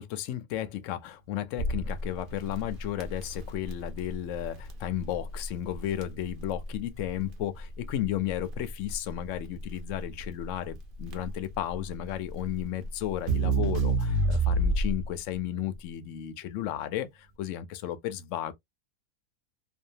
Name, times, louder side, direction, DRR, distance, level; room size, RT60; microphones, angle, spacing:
voice 1, 0.0-18.5, left 11 dB, 65° left, 0.8 m, -34 dB
Crackle, 1.6-15.2, right 2 dB, 55° right, 0.6 m, -30 dB
2.6 x 2.2 x 2.7 m
omnidirectional pair, 1.7 m